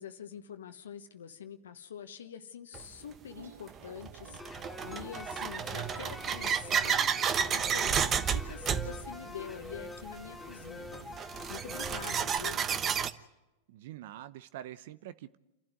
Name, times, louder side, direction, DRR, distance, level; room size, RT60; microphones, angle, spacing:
voice 1, 0.0-7.1 7.4-12.6, left 8 dB, 80° left, 8 dB, 1.3 m, -45 dB
sound 1, 2.7-2.8 3.7-13.1, right 7 dB, 30° right, 1.1 m, -32 dB
sound 2, 3.0-9.4, right 6 dB, 80° right, 2.7 m, -56 dB
sound 3, 4.4-12.4, left 3 dB, 10° left, 3.0 m, -46 dB
voice 2, 13.7-15.4, right 12 dB, 65° right, 14 dB, 0.8 m, -45 dB
29.0 x 12.0 x 9.3 m, 0.99 s
hypercardioid pair, 100°, 0 cm